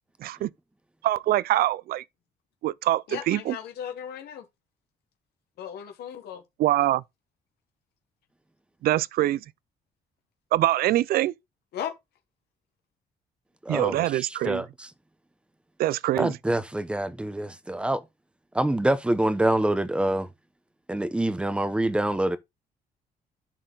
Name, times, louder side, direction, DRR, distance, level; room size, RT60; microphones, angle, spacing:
voice 1, 1.0-2.0 2.6-3.6 6.6-7.0 8.8-9.4 10.5-11.3 13.7-14.6 15.8-16.4, right 14 dB, 70° right, 0.4 m, -24 dB
voice 2, 3.1-4.4 5.6-6.4 11.7-11.9, left 9 dB, 85° left, 1.4 m, -36 dB
voice 3, 13.6-14.9 16.1-18.0 18.5-20.3 20.9-22.4, right 1 dB, 5° right, 0.9 m, -26 dB
11.5 x 4.4 x 3.9 m
cardioid pair, 130°, 16 cm